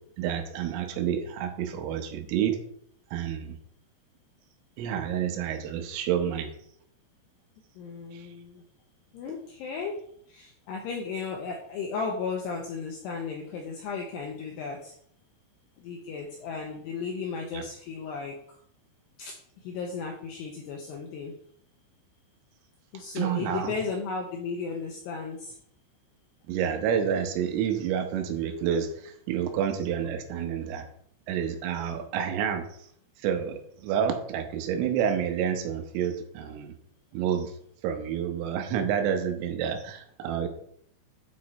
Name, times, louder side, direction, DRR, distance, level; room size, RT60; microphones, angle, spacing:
voice 1, 0.2-2.6 3.1-3.5 4.8-6.5 8.1-8.3 17.5-17.6 23.2-23.8 26.5-30.9 31.3-32.7 33.2-36.7 37.1-37.5 37.8-40.5, right 8 dB, 85° right, 5 dB, 3.6 m, -29 dB
voice 2, 7.8-8.6 9.1-10.0 10.3-14.9 15.8-18.4 19.2-21.3 22.9-25.6 29.3-29.4, left 5 dB, 80° left, 1 dB, 2.4 m, -35 dB
8.5 x 4.9 x 4.2 m, 0.65 s
omnidirectional pair, 5.9 m